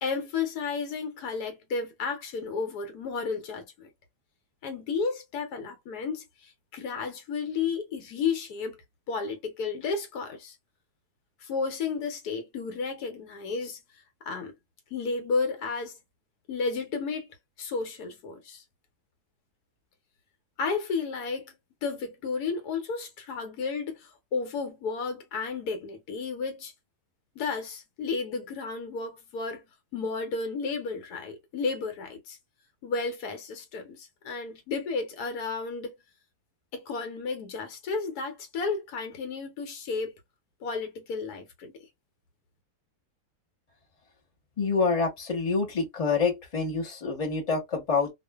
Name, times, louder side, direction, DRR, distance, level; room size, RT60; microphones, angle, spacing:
voice 1, 0.0-3.9 4.6-10.6 11.4-13.8 14.2-14.5 14.9-15.9 16.5-18.6 20.6-21.6 21.8-26.7 27.4-29.6 29.9-32.4 32.8-35.9 36.7-40.1 40.6-41.7, left 4 dB, 75° left, 1.2 m, -32 dB
voice 2, 44.6-48.1, left 4 dB, 25° left, 1.0 m, -27 dB
2.5 x 2.4 x 2.3 m
omnidirectional pair, 1.7 m